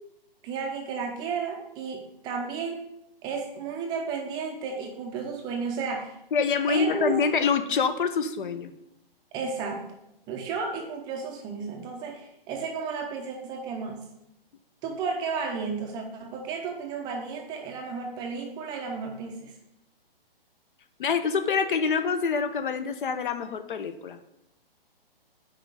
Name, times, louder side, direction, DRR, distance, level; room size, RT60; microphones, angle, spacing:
voice 1, 0.4-2.8 3.2-6.2 6.7-7.1 9.3-10.0 10.3-14.1 14.8-19.5, right 5 dB, 15° right, 2 dB, 0.6 m, -33 dB
voice 2, 6.3-8.7 21.0-24.2, left 5 dB, 55° left, 10 dB, 0.8 m, -26 dB
5.9 x 4.8 x 6.6 m, 0.83 s
hypercardioid pair, 140°, 30 cm